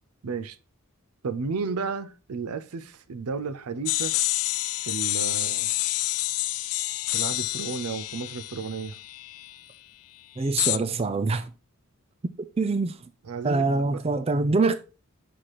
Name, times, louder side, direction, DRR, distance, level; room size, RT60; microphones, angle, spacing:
voice 1, 0.2-0.6 1.2-4.2 4.8-5.7 7.1-9.0 13.2-14.0, right 5 dB, 85° right, 0.5 m, -33 dB
sound 1, 3.9-9.6 10.6-10.8, left 17 dB, 80° left, 0.4 m, -28 dB
voice 2, 10.4-11.5 12.6-13.0 13.4-14.8, right 3 dB, 25° right, 0.3 m, -24 dB
6.0 x 4.8 x 4.1 m
head